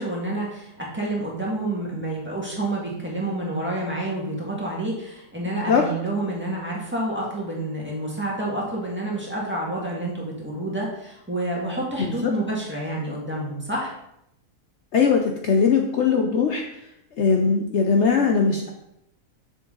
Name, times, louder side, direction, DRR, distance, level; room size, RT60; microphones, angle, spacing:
voice 1, 0.0-13.9, right 1 dB, 10° right, -5 dB, 1.8 m, -28 dB
voice 2, 12.0-12.3 14.9-16.8 17.2-18.7, left 5 dB, 60° left, 2 dB, 0.9 m, -20 dB
6.8 x 6.2 x 3.9 m, 0.80 s
omnidirectional pair, 1.5 m